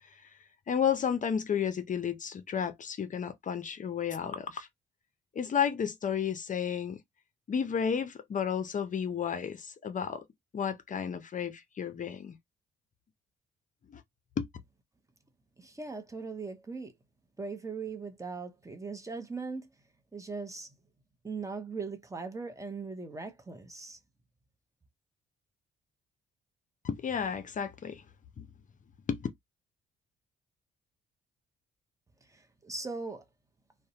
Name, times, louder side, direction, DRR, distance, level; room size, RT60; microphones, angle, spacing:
voice 1, 0.7-4.7 5.3-7.0 7.5-10.2 10.5-12.4 13.9-14.0 14.4-14.5 26.8-28.0 28.4-28.5 29.1-29.3, left 7 dB, 40° left, 0.5 m, -32 dB
voice 2, 15.6-16.9 17.4-19.7 20.1-20.7 21.2-24.0 32.3-33.2, right 4 dB, 15° right, 0.6 m, -39 dB
2.5 x 2.1 x 2.8 m
cardioid pair, 90°, 20 cm